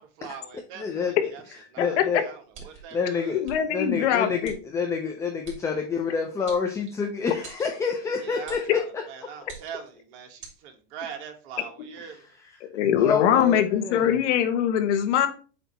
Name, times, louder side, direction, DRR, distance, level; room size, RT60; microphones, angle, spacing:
voice 1, 0.0-1.4 1.7-3.4 8.0-12.3, right 7 dB, 50° right, 4 dB, 1.5 m, -42 dB
voice 2, 0.8-1.2 1.8-2.2 2.7-9.5 12.0-12.5 13.0-14.2, left 5 dB, 10° left, 3 dB, 0.3 m, -29 dB
sound 1, 2.5-2.9 3.4-3.6 4.4-4.6 5.4-5.6 6.5-7.1 7.4-7.7 8.5-8.7 9.4-9.9 10.4-10.6, right 6 dB, 30° right, 2.8 m, -43 dB
voice 3, 3.3-4.5 12.7-15.3, left 9 dB, 70° left, 8 dB, 1.2 m, -22 dB
8.0 x 2.8 x 4.4 m, 0.38 s
supercardioid pair, 145°, 36 cm